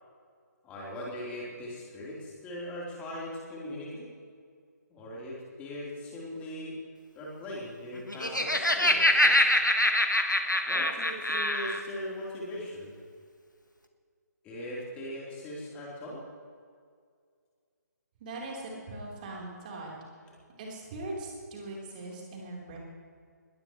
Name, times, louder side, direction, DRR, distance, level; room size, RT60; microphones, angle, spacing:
voice 1, 0.6-4.1 4.9-6.8 7.2-9.5 10.7-12.9 14.4-16.2, left 1 dB, 15° left, -5 dB, 4.0 m, -40 dB
Laughter, 8.0-11.8, left 1 dB, 85° left, 1.6 m, -24 dB
voice 2, 18.2-19.9 20.6-22.8, right 2 dB, 30° right, -3 dB, 4.2 m, -40 dB
21.5 x 18.5 x 3.3 m, 2.1 s
figure-of-eight pair, 140°, 10 cm